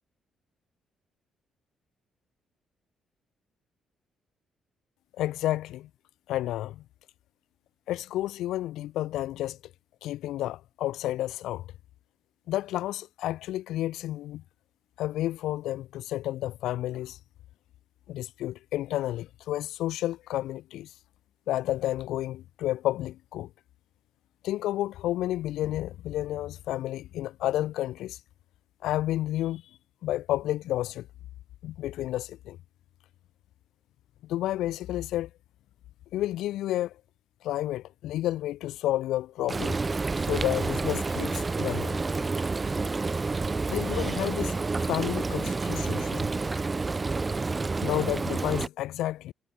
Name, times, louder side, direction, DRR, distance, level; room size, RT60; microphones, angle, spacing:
voice 1, 5.2-5.9 6.3-6.8 7.9-9.6 10.0-11.7 12.5-14.4 15.0-17.2 18.1-20.9 21.5-23.5 24.4-28.2 28.8-29.6 30.0-31.1 31.6-32.6 34.2-35.3 36.1-36.9 37.4-39.8 40.2-41.9 43.7-44.6 44.9-46.3 47.8-49.3, left 14 dB, 85° left, 0.7 m, -31 dB
Frying (food), 39.5-48.7, right 3 dB, 25° right, 0.4 m, -29 dB
cardioid pair, 90°, 0 cm